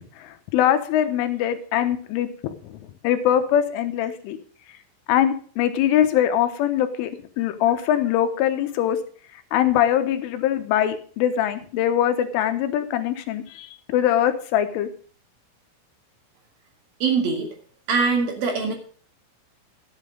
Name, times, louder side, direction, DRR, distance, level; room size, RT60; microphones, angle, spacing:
voice 1, 0.2-4.4 5.1-9.0 9.3-14.9, left 10 dB, 85° left, 8 dB, 3.7 m, -22 dB
voice 2, 17.0-17.5 17.9-18.7, right 5 dB, 55° right, 3 dB, 3.4 m, -22 dB
12.5 x 8.9 x 5.2 m, 0.43 s
omnidirectional pair, 5.5 m